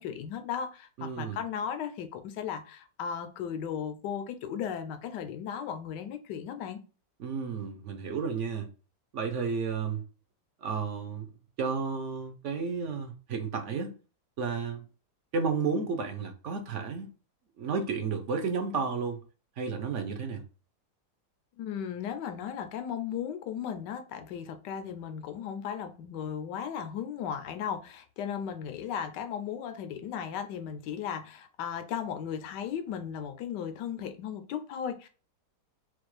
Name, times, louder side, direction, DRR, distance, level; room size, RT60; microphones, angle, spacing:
voice 1, 0.0-6.8 21.6-35.1, left 8 dB, 80° left, 1.3 m, -36 dB
voice 2, 1.0-1.4 7.2-8.7 9.1-10.0 10.6-11.3 11.6-13.9 14.4-14.8 15.3-17.1 17.6-19.2 19.6-20.4, right 5 dB, 60° right, 0.8 m, -32 dB
4.3 x 2.4 x 4.6 m
omnidirectional pair, 1.9 m